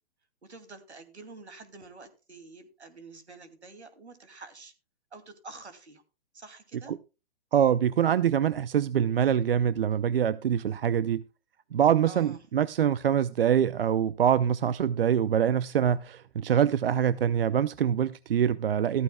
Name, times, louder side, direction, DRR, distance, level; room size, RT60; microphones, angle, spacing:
voice 1, 0.4-4.7 5.1-6.0 6.3-6.9 12.1-12.4, right 3 dB, 80° right, 2.5 m, -48 dB
voice 2, 7.5-11.2 11.7-19.0, right 9 dB, 60° right, 0.6 m, -24 dB
14.0 x 14.0 x 2.2 m
figure-of-eight pair, 130°, 33 cm